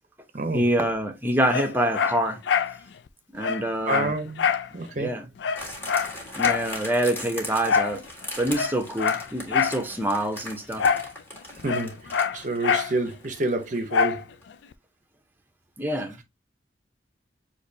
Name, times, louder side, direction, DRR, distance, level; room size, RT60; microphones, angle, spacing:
voice 1, 0.5-2.4 3.3-4.1 5.0-5.3 6.3-8.0 8.4-10.9 15.8-16.2, right 1 dB, 10° right, 0.8 m, -26 dB
Dog, 1.5-2.8 3.1-3.2 3.4-4.7 5.0-5.1 5.4-6.7 7.7-8.0 8.5-9.8 10.8-11.1 11.4-12.9 13.9-14.2 14.7-14.8, left 6 dB, 80° left, 0.4 m, -25 dB
voice 2, 3.8-4.5 4.7-5.1 11.6-12.0 12.3-14.2, right 2 dB, 45° right, 0.7 m, -28 dB
sound 1, 5.6-14.2 14.4-14.5, left 1 dB, 15° left, 1.6 m, -39 dB
6.5 x 2.8 x 2.7 m
head